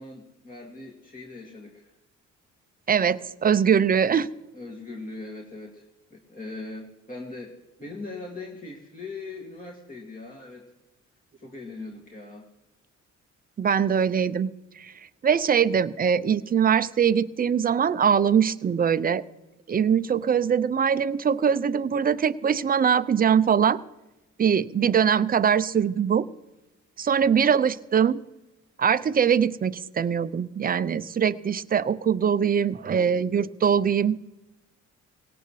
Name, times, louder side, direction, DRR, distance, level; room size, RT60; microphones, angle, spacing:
voice 1, 0.0-1.9 4.5-5.9 6.1-10.7 11.4-12.5 27.3-27.6 33.0-33.1, left 3 dB, 25° left, -1 dB, 2.3 m, -40 dB
voice 2, 2.9-4.3 13.6-14.5 14.8-14.9 15.2-19.2 19.7-23.8 24.4-26.3 27.0-28.2 28.8-34.3, right 7 dB, 30° right, 13 dB, 0.5 m, -22 dB
18.5 x 17.5 x 3.2 m, 1.1 s
cardioid pair, 90°, 30 cm